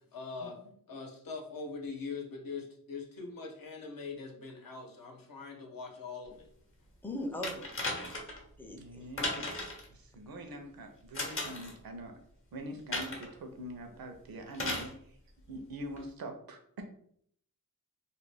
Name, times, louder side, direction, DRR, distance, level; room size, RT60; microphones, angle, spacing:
voice 1, 0.1-0.6 0.9-6.5, left 4 dB, 70° left, 1 dB, 0.7 m, -42 dB
voice 2, 7.0-8.2 8.6-9.0, left 1 dB, 5° left, 3 dB, 0.4 m, -41 dB
sound 1, 7.4-8.4 9.2-9.9 11.1-11.7 12.9-13.3 14.5-14.9 16.0-16.1, left 2 dB, 40° left, 0.7 m, -36 dB
voice 3, 8.7-9.5 9.9-12.2 12.5-15.2 15.5-16.8, right 1 dB, 80° right, 4 dB, 0.6 m, -44 dB
2.4 x 2.2 x 3.2 m, 0.64 s
wide cardioid pair, 105°, 35 cm